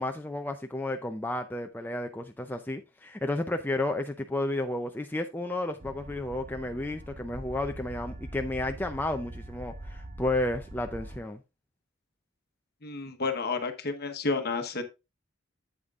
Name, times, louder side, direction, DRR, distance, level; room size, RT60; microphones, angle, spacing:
voice 1, 0.0-11.4, left 1 dB, 10° left, 0.4 m, -32 dB
sound 1, 5.8-11.2, right 1 dB, 35° right, 1.0 m, -43 dB
voice 2, 12.8-14.8, left 3 dB, 50° left, 1.1 m, -31 dB
8.7 x 8.0 x 2.4 m
head